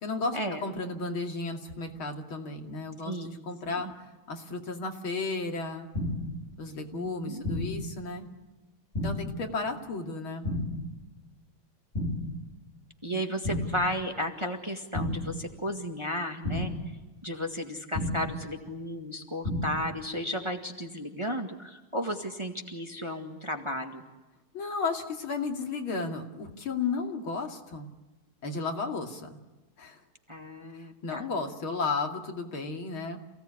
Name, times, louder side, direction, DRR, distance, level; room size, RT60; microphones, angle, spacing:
voice 1, 0.0-3.9 4.3-5.9 6.6-8.3 9.0-10.5 13.1-13.2 24.5-27.9 28.4-29.4 29.8-30.0 30.7-33.2, left 4 dB, 70° left, 3 dB, 3.3 m, -34 dB
sound 1, 5.9-6.4 7.4-7.9 8.9-9.4 10.4-10.9 11.9-12.4 13.4-13.9 14.9-15.4 16.4-16.9 17.9-18.4 19.4-19.9, left 1 dB, 30° left, 4.8 m, -31 dB
voice 2, 6.9-7.4 13.0-16.7 17.2-24.0 30.3-31.3, equal, 15° right, 4 dB, 1.8 m, -34 dB
28.5 x 17.5 x 9.9 m, 1.1 s
omnidirectional pair, 2.3 m